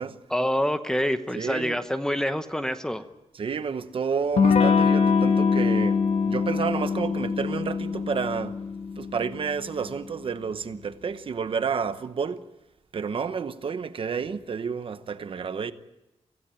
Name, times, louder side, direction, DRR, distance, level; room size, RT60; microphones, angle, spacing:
voice 1, 0.3-3.0, equal, 5° left, 1.0 m, -26 dB
voice 2, 1.3-1.8 3.3-8.6 9.0-12.5 12.9-15.7, right 6 dB, 55° right, 1.0 m, -30 dB
Electric guitar / Strum, 4.4-9.7, left 5 dB, 85° left, 1.4 m, -23 dB
24.5 x 16.0 x 9.0 m
wide cardioid pair, 170°, 11 cm